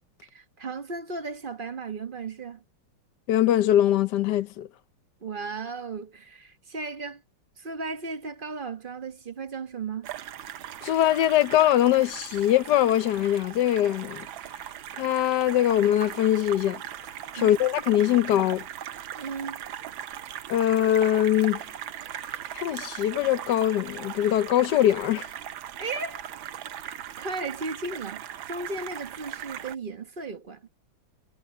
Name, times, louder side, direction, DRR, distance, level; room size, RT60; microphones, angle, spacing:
voice 1, 0.3-2.6 5.2-7.2 7.6-10.1 17.3-17.5 19.2-19.6 25.8-26.2 26.8-30.7, right 4 dB, 30° right, 1.1 m, -35 dB
voice 2, 3.3-4.7 10.8-14.3 15.0-16.8 17.3-18.7 20.5-21.6 22.5-25.3, left 12 dB, 70° left, 1.2 m, -22 dB
sound 1, 10.0-29.7, right 10 dB, 85° right, 1.7 m, -39 dB
omnidirectional pair, 2.1 m